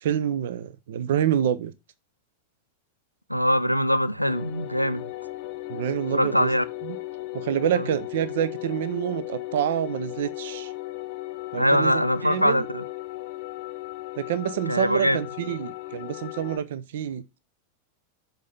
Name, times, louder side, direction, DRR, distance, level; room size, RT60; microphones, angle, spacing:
voice 1, 0.0-1.7 5.7-6.5 6.8-7.0 7.3-10.7 11.5-12.7 14.2-17.2, right 10 dB, 55° right, 0.5 m, -27 dB
voice 2, 3.3-5.0 6.1-6.6 7.7-7.8 11.5-12.8 14.7-15.2, equal, 90° left, 0.4 m, -22 dB
sound 1, 4.2-16.6, left 18 dB, 45° left, 0.7 m, -36 dB
6.4 x 4.0 x 5.2 m
figure-of-eight pair, 90°, 0 cm